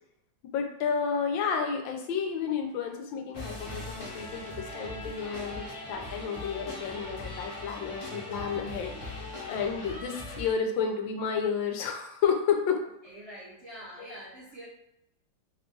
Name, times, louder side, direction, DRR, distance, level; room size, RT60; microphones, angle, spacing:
voice 1, 0.5-12.8 14.0-14.1, left 6 dB, 85° left, 4 dB, 1.4 m, -31 dB
sound 1, 3.3-10.5, left 2 dB, 30° left, 0.7 m, -40 dB
voice 2, 13.0-14.7, equal, 70° right, -6 dB, 0.6 m, -45 dB
3.3 x 2.3 x 3.7 m, 0.81 s
omnidirectional pair, 2.0 m